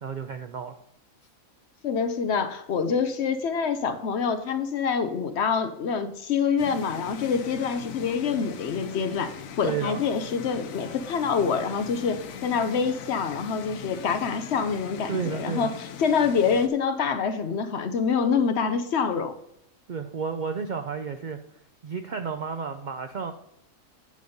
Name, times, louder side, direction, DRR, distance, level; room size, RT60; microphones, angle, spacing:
voice 1, 0.0-0.8 9.6-10.0 15.1-15.7 19.9-21.4 21.8-23.3, right 6 dB, 65° right, 8 dB, 0.4 m, -31 dB
voice 2, 1.8-9.3 9.6-19.4, left 6 dB, 60° left, 10 dB, 0.9 m, -26 dB
sound 1, 6.6-16.7, left 7 dB, 85° left, 1.1 m, -40 dB
9.4 x 5.2 x 5.3 m, 0.74 s
omnidirectional pair, 1.4 m